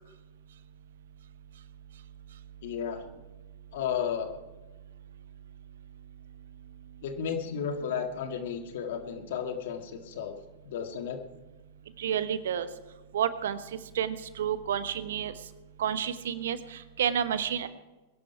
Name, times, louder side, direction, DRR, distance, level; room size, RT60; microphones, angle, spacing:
voice 1, 2.6-3.0 3.7-4.4 7.0-10.4 10.7-11.2, left 7 dB, 60° left, 6 dB, 1.9 m, -33 dB
voice 2, 12.0-12.7 13.1-13.6 13.9-15.3 15.8-17.7, right 9 dB, 65° right, 13 dB, 1.1 m, -30 dB
20.5 x 11.5 x 4.6 m, 1.1 s
figure-of-eight pair, 100°, 0 cm